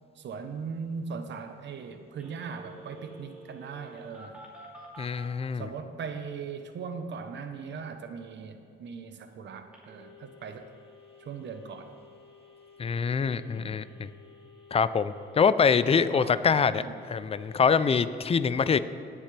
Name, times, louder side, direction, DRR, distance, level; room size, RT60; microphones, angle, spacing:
voice 1, 0.2-4.4 5.5-10.7 11.2-11.9 13.5-13.8 15.9-16.4 16.7-16.9, right 5 dB, 65° right, 7 dB, 1.0 m, -39 dB
Telephone, 2.2-5.3 9.7-17.9, left 1 dB, 5° right, 3.0 m, -52 dB
voice 2, 5.0-5.7 12.8-14.1 14.7-18.8, left 6 dB, 30° left, 14 dB, 0.5 m, -25 dB
18.5 x 7.4 x 3.4 m, 2.6 s
cardioid pair, 90°, 20 cm